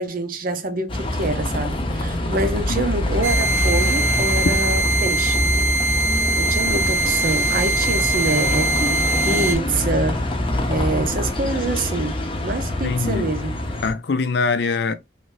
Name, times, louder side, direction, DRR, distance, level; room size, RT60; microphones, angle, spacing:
voice 1, 0.0-5.5 6.3-10.2 10.7-13.5, right 2 dB, 55° right, 0.6 m, -26 dB
Bus, 0.9-13.9, left 1 dB, 30° left, 0.7 m, -24 dB
sound 1, 3.2-9.6, right 2 dB, 10° right, 0.8 m, -22 dB
voice 2, 12.8-13.3 13.8-14.9, left 4 dB, 70° left, 0.5 m, -23 dB
3.2 x 2.6 x 3.1 m
head